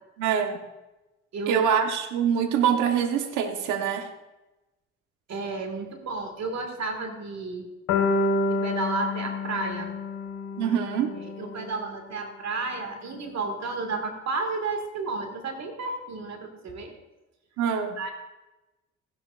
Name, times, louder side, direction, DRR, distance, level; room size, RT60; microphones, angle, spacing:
voice 1, 0.2-0.6 1.5-4.1 10.6-11.1 17.6-18.0, right 8 dB, 85° right, 5 dB, 1.2 m, -24 dB
voice 2, 1.3-1.6 5.3-7.7 8.5-9.9 11.1-16.9 18.0-18.1, right 3 dB, 60° right, 4 dB, 2.0 m, -32 dB
sound 1, 7.9-12.0, left 3 dB, 85° left, 1.9 m, -28 dB
15.0 x 10.5 x 2.5 m, 1.0 s
cardioid pair, 80°, 30 cm